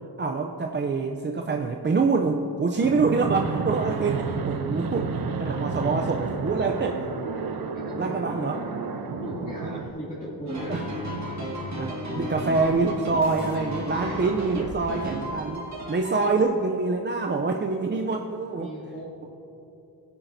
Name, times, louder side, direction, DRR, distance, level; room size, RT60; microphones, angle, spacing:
voice 1, 0.2-5.1 5.4-7.1 8.0-8.6 10.7-10.8 11.8-18.7, right 4 dB, 30° right, 3 dB, 0.5 m, -25 dB
Fixed-wing aircraft airplane, 2.8-9.9, right 5 dB, 65° right, 0.9 m, -31 dB
sound 1, 3.2-10.3, left 3 dB, 10° right, 1.7 m, -46 dB
voice 2, 7.7-8.7 9.2-11.1 13.9-14.2 18.6-19.3, equal, 20° left, -9 dB, 2.5 m, -38 dB
sound 2, 10.5-16.4, right 1 dB, 45° right, 1.8 m, -33 dB
19.0 x 10.5 x 2.7 m, 2.9 s
wide cardioid pair, 125°, 39 cm